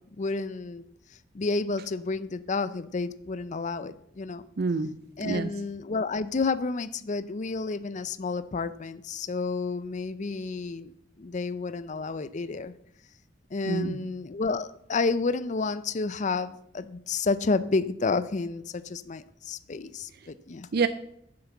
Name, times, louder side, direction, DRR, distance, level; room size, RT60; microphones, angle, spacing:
voice 1, 0.2-0.8 1.3-4.4 5.2-12.7 13.5-20.7, left 4 dB, 40° left, 14 dB, 0.5 m, -30 dB
voice 2, 4.6-5.5 13.7-14.0 20.7-20.9, right 4 dB, 60° right, 12 dB, 0.5 m, -27 dB
9.6 x 7.8 x 7.0 m, 0.74 s
head